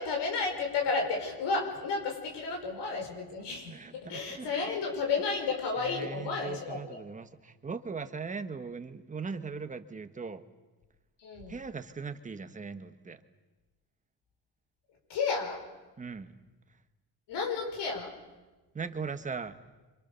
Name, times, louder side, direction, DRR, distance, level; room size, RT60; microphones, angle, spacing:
voice 1, 0.0-7.0 11.2-11.6 15.1-15.6 17.3-18.1, left 4 dB, 85° left, 2 dB, 5.6 m, -32 dB
voice 2, 3.7-4.8 5.8-10.4 11.5-13.2 16.0-16.4 18.7-19.6, right 5 dB, 20° right, 9 dB, 1.1 m, -39 dB
30.0 x 26.0 x 6.9 m, 1.2 s
cardioid pair, 175°, 41 cm